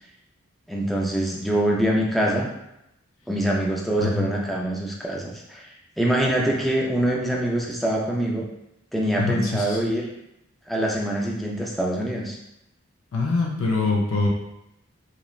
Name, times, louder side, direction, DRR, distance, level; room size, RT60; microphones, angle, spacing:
voice 1, 0.7-2.5 3.3-8.5 8.9-10.1 10.7-12.4, right 1 dB, ahead, -2 dB, 0.3 m, -24 dB
voice 2, 9.2-9.8 13.1-14.3, left 3 dB, 75° left, -2 dB, 0.5 m, -24 dB
2.9 x 2.1 x 2.3 m, 0.85 s
head